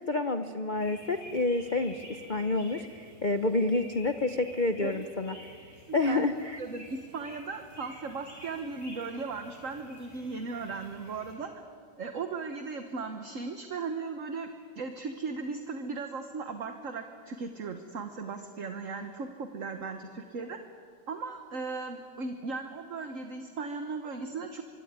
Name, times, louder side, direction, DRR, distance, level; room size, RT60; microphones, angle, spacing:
voice 1, 0.1-5.3 5.9-6.6, left 2 dB, 80° left, 9 dB, 0.4 m, -29 dB
sound 1, 0.7-11.3, equal, 20° left, 7.7 m, -51 dB
voice 2, 4.8-5.1 5.9-6.2 6.6-11.5 12.0-14.5 14.7-20.6 21.1-24.6, right 4 dB, 45° right, 7 dB, 1.4 m, -37 dB
25.5 x 24.0 x 9.7 m, 2.2 s
omnidirectional pair, 2.4 m